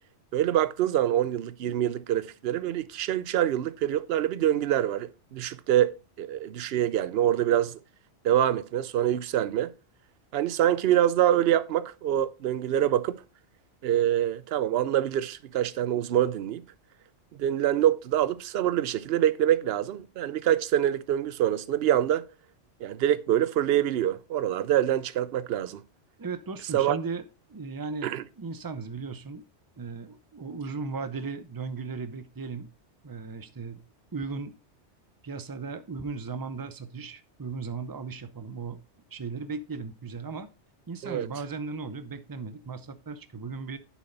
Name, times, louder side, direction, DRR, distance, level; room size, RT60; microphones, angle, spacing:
voice 1, 0.3-7.8 8.2-9.7 10.3-13.2 13.8-16.6 17.4-22.2 22.8-25.8 26.7-27.0 28.0-28.2 41.0-41.3, right 11 dB, 60° right, 0.8 m, -25 dB
voice 2, 26.2-27.2 27.5-29.4 29.8-32.7 33.0-33.8 34.1-34.5 35.2-38.8 39.1-40.5 40.9-43.8, right 4 dB, 20° right, 0.6 m, -36 dB
9.2 x 7.3 x 4.0 m
omnidirectional pair, 1.2 m